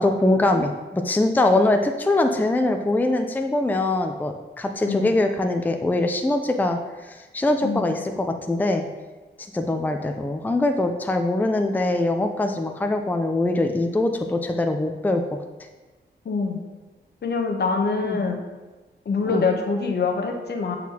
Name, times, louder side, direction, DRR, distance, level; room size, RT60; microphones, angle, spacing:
voice 1, 0.0-8.8 9.4-15.7 18.0-18.2 19.3-19.4, left 2 dB, 10° left, 5 dB, 0.4 m, -23 dB
voice 2, 7.6-7.9 16.2-16.6 17.2-18.4 19.1-20.8, left 4 dB, 65° left, 4 dB, 0.8 m, -24 dB
8.1 x 4.1 x 2.8 m, 1.2 s
cardioid pair, 70°, 19 cm